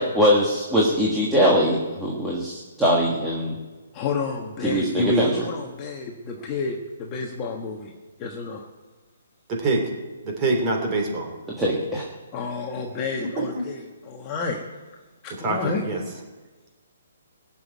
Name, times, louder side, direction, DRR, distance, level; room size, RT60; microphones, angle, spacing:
voice 1, 0.0-3.6 4.6-5.3 11.6-12.1, equal, 5° right, -5 dB, 1.6 m, -21 dB
voice 2, 3.9-7.9 8.2-8.7 12.3-14.6 15.2-15.8, left 4 dB, 20° left, 0 dB, 1.3 m, -31 dB
voice 3, 4.9-5.3 9.5-9.9 10.2-11.3 13.2-13.3 13.5-13.6 15.4-16.0, right 2 dB, 20° right, 2 dB, 3.0 m, -24 dB
19.0 x 7.3 x 9.3 m, 1.3 s
hypercardioid pair, 170°, 0 cm